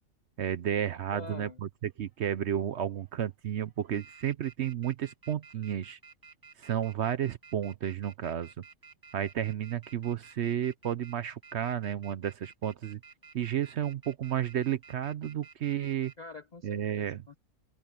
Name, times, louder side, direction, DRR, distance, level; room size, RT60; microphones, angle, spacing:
voice 1, 0.4-1.5 1.8-6.0 6.6-8.5 9.1-13.0 13.3-16.1 16.6-17.2, right 10 dB, 60° right, 0.8 m, -32 dB
voice 2, 1.1-1.6 16.2-17.4, left 4 dB, 35° left, 0.8 m, -45 dB
sound 1, 1.9-2.5 3.0-3.3 3.7-16.1, right 5 dB, 15° right, 1.0 m, -53 dB
omnidirectional pair, 1.5 m